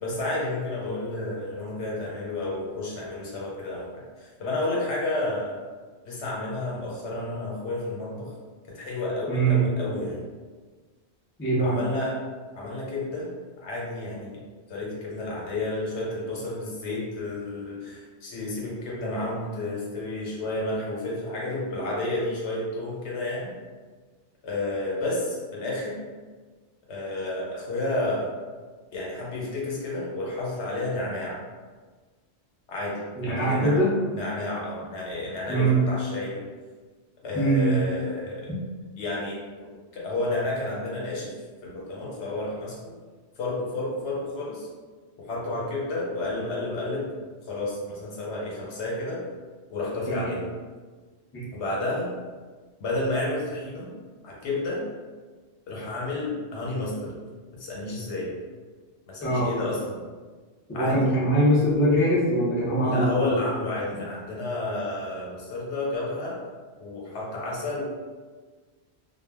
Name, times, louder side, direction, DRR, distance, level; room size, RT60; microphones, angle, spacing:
voice 1, 0.0-5.6 6.0-8.3 8.7-10.2 11.6-12.2 12.5-13.3 13.6-14.4 14.7-23.5 24.4-25.9 26.9-28.3 28.9-31.4 32.7-33.0 33.3-33.8 34.1-36.4 37.2-38.5 39.0-39.4 39.9-41.3 41.6-42.9 43.4-44.7 45.2-47.1 47.5-49.2 49.7-50.4 51.5-52.1 52.8-53.9 54.2-54.8 55.7-57.1 57.5-58.3 59.1-60.0 60.7-61.0 62.8-66.4 66.8-67.8, left 2 dB, 80° left, -4 dB, 1.1 m, -31 dB
voice 2, 9.3-9.6 11.4-11.7 33.2-33.9 35.5-35.8 37.3-37.8 50.1-50.4 51.3-51.5 59.2-59.5 60.7-63.2, right 1 dB, 15° left, -7 dB, 0.5 m, -22 dB
2.3 x 2.1 x 3.4 m, 1.4 s
omnidirectional pair, 1.1 m